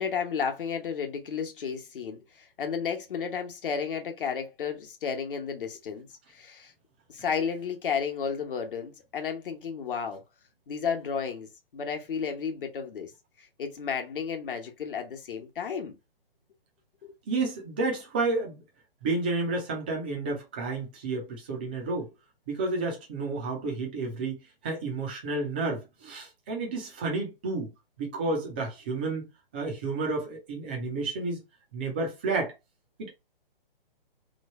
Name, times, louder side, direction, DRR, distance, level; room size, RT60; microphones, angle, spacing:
voice 1, 0.0-6.7 7.1-10.2 10.7-13.1 13.6-15.9 17.0-17.1, left 6 dB, 60° left, 1.1 m, -32 dB
voice 2, 17.3-18.6 19.0-22.1 22.5-24.4 24.6-27.7 28.0-31.4 31.7-32.5 33.0-33.1, right 3 dB, 10° right, 0.3 m, -31 dB
3.1 x 2.2 x 4.2 m
hypercardioid pair, 150°, 29 cm